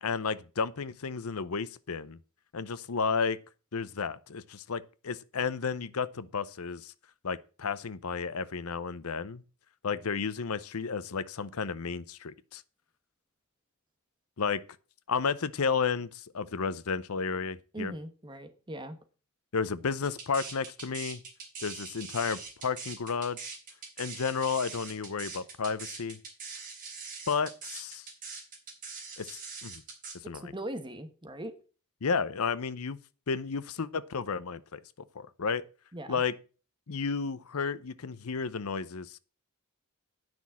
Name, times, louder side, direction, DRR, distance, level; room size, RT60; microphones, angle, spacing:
voice 1, 0.0-2.2 2.5-3.4 3.7-6.9 7.2-9.4 9.8-12.6 14.4-14.6 15.1-17.9 19.5-21.2 21.6-23.6 24.0-26.2 27.3-28.1 29.2-29.8 30.2-30.5 32.0-33.0 33.3-34.8 35.1-35.6 36.1-36.3 36.9-39.2, left 5 dB, 75° left, 0.7 m, -32 dB
voice 2, 17.7-19.0 30.4-31.5 35.9-36.2, right 1 dB, 20° right, 1.2 m, -39 dB
sound 1, 20.0-30.1, right 4 dB, 40° right, 3.8 m, -42 dB
9.7 x 6.2 x 7.3 m
head